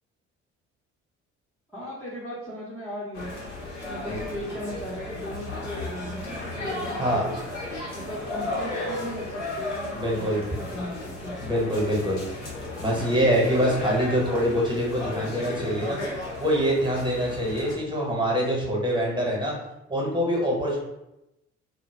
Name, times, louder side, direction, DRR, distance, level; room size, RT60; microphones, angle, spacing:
voice 1, 1.7-3.5 3.8-7.3 7.9-11.3, equal, 5° left, -8 dB, 0.6 m, -37 dB
sound 1, 3.1-17.7, left 2 dB, 80° left, 0.8 m, -34 dB
voice 2, 9.9-10.4 11.4-12.2 12.8-16.0 16.4-19.5 19.9-20.8, equal, 15° right, -3 dB, 0.9 m, -24 dB
2.2 x 2.1 x 3.3 m, 0.90 s
figure-of-eight pair, 50°, 36 cm